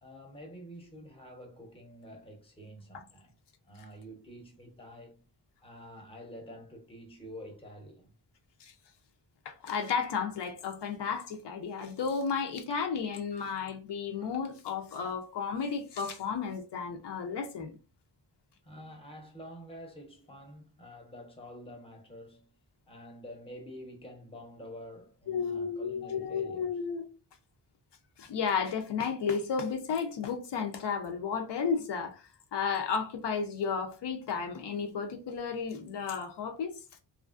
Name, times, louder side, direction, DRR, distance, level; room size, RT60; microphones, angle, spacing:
voice 1, 0.0-3.3 3.6-5.3 5.6-8.1 18.6-22.5 22.9-26.8, equal, 15° left, 0.7 m, -48 dB
voice 2, 9.5-17.8 25.3-27.1 28.2-36.8, left 6 dB, 75° left, 0.6 m, -33 dB
3.1 x 2.5 x 2.4 m
wide cardioid pair, 150°, 41 cm